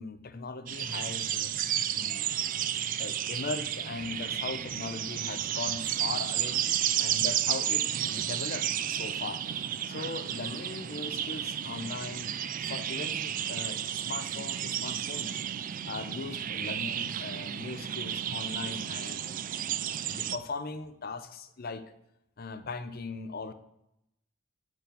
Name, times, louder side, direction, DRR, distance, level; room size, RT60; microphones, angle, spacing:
voice 1, 0.0-1.5 1.9-2.5 3.0-6.6 7.0-12.3 12.6-15.4 15.8-19.3 20.1-21.8 22.4-23.5, left 3 dB, 45° left, 11 dB, 0.6 m, -39 dB
sound 1, 0.7-20.4, right 10 dB, 40° right, 0.3 m, -32 dB
9.3 x 4.6 x 5.2 m, 0.82 s
head